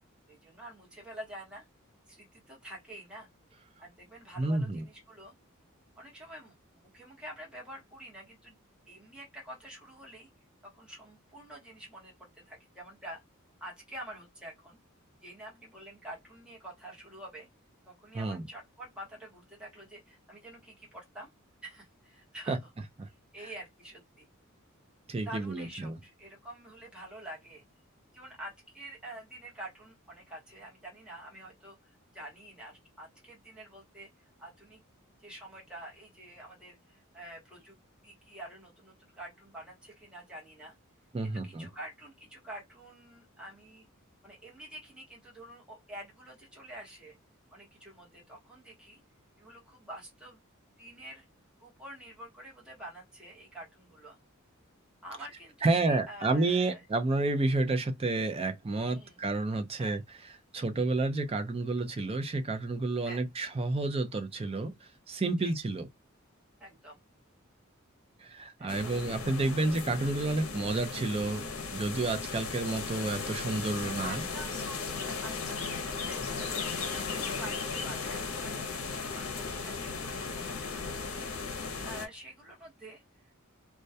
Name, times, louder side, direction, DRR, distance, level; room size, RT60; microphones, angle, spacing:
voice 1, 0.3-1.7 2.1-3.3 3.8-5.3 6.0-8.6 8.9-10.3 10.6-13.2 13.6-14.8 15.2-17.5 17.9-21.3 21.6-22.6 23.1-24.3 25.2-27.6 28.1-34.8 35.2-37.8 38.0-40.8 41.2-43.9 44.2-47.2 47.5-49.0 49.4-50.4 50.8-51.2 51.6-54.2 55.0-56.8 58.9-59.2 59.7-60.0 63.0-63.2 65.4-65.5 66.6-67.0 68.6-69.0 69.4-69.5 73.8-83.3, right 1 dB, 5° right, 0.9 m, -47 dB
voice 2, 4.4-4.9 18.1-18.5 22.5-22.6 23.0-23.1 25.1-25.9 41.1-41.7 55.6-60.0 60.5-65.9 68.2-74.2, right 2 dB, 30° right, 0.4 m, -30 dB
sound 1, 68.7-82.1, left 4 dB, 75° left, 0.6 m, -36 dB
2.2 x 2.1 x 2.6 m
head